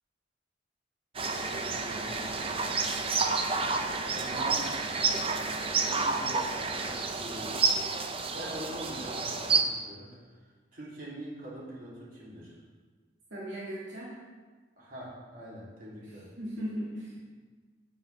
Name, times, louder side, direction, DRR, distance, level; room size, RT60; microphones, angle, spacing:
sound 1, 1.1-9.6, right 4 dB, 30° right, 0.6 m, -30 dB
voice 1, 1.6-2.5 4.1-4.7 5.8-6.6 7.2-7.5 8.3-12.6 14.8-16.3, right 1 dB, 50° right, -6 dB, 3.1 m, -44 dB
voice 2, 13.3-14.1 15.9-17.1, equal, 80° right, -6 dB, 2.0 m, -38 dB
9.9 x 8.8 x 3.5 m, 1.4 s
head